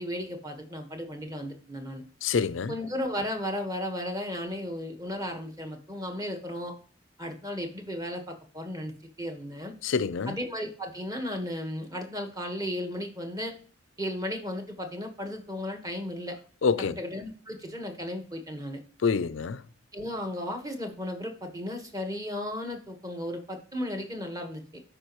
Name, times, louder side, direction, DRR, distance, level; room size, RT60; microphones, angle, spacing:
voice 1, 0.0-2.0 2.7-6.7 7.2-9.7 10.3-13.5 14.0-16.4 16.8-18.8 19.9-24.8, left 1 dB, 20° right, 1.3 m, -35 dB
voice 2, 2.2-2.7 9.8-10.3 16.6-17.0 19.0-19.6, left 5 dB, 85° left, 0.5 m, -26 dB
12.5 x 5.0 x 3.0 m
head